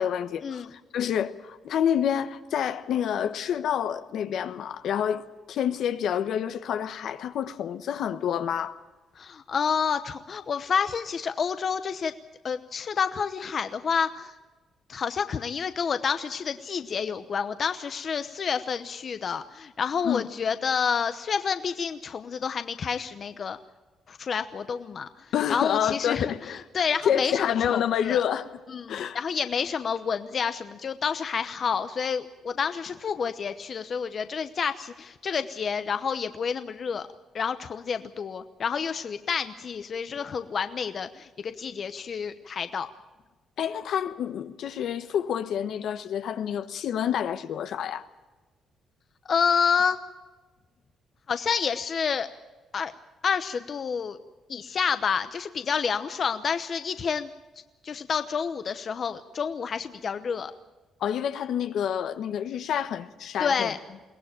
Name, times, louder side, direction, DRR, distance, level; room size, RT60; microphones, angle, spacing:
voice 1, 0.0-8.8 20.0-20.3 25.3-26.6 27.0-28.5 28.9-29.2 43.6-48.1 61.0-63.7, left 9 dB, 75° left, 1.1 m, -28 dB
voice 2, 9.2-12.1 12.4-14.3 14.9-23.6 24.1-26.3 26.7-28.2 28.7-37.1 37.3-42.9 49.3-50.0 51.3-52.3 52.7-52.9 53.2-54.2 54.5-57.3 57.8-60.5 63.4-63.8, left 6 dB, 50° left, 0.9 m, -29 dB
22.5 x 17.0 x 9.0 m
cardioid pair, 90°, 0 cm